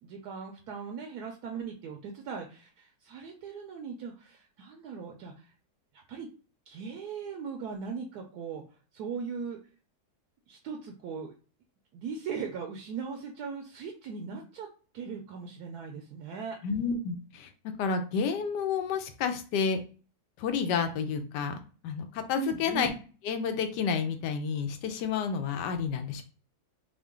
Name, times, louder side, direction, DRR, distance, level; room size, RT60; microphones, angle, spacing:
voice 1, 0.0-5.5 6.1-6.3 6.7-8.6 8.9-9.6 10.5-11.3 11.9-14.7 14.9-16.6 22.4-22.9, right 6 dB, 75° right, 2 dB, 1.1 m, -39 dB
voice 2, 16.6-17.5 17.8-19.8 20.4-21.6 21.8-22.9 23.2-26.2, left 6 dB, 85° left, 7 dB, 1.2 m, -30 dB
3.7 x 2.1 x 3.5 m, 0.37 s
omnidirectional pair, 1.8 m